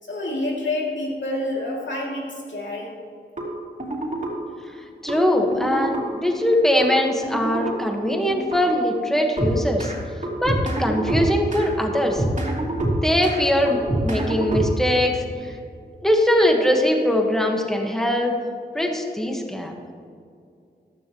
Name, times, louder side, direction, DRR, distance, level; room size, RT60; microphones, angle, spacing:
voice 1, 0.0-2.9, left 1 dB, 90° left, -3 dB, 2.8 m, -28 dB
sound 1, 3.4-3.5 3.8-4.3 5.1-5.2 5.5-6.0 6.8-6.9 7.2-7.7 8.3-8.6 9.4-10.0 10.2-11.7 11.9-13.4 13.7-15.0, right 1 dB, 40° right, 3.1 m, -26 dB
voice 2, 5.0-9.9 10.4-12.2 13.0-13.8 14.0-15.5 16.0-18.3 18.7-19.7, left 1 dB, ahead, 1 dB, 1.6 m, -21 dB
15.0 x 13.0 x 3.1 m, 2.4 s
wide cardioid pair, 70°, 19 cm